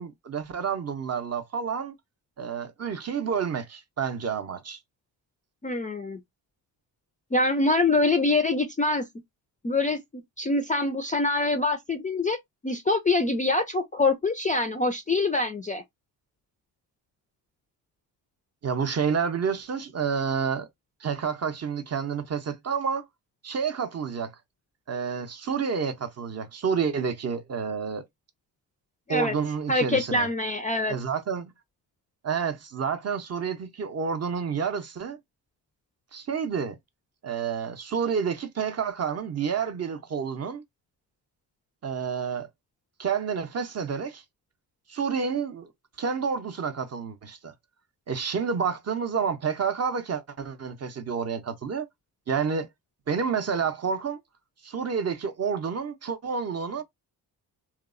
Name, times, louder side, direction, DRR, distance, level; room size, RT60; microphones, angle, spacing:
voice 1, 0.0-1.9 2.4-4.8 18.6-20.7 21.0-23.1 23.4-24.3 24.9-28.0 29.1-30.3 30.9-31.5 32.2-35.2 36.1-36.8 37.2-40.6 41.8-42.5 43.0-44.2 44.9-45.7 46.0-47.5 48.1-51.9 52.3-52.7 53.1-54.2 54.6-56.8, right 6 dB, 35° right, 0.5 m, -29 dB
voice 2, 5.6-6.2 7.3-9.1 9.6-12.4 12.6-15.8 29.1-29.3 29.7-31.0, left 2 dB, 20° left, 0.3 m, -25 dB
2.8 x 2.0 x 2.4 m
cardioid pair, 70°, 42 cm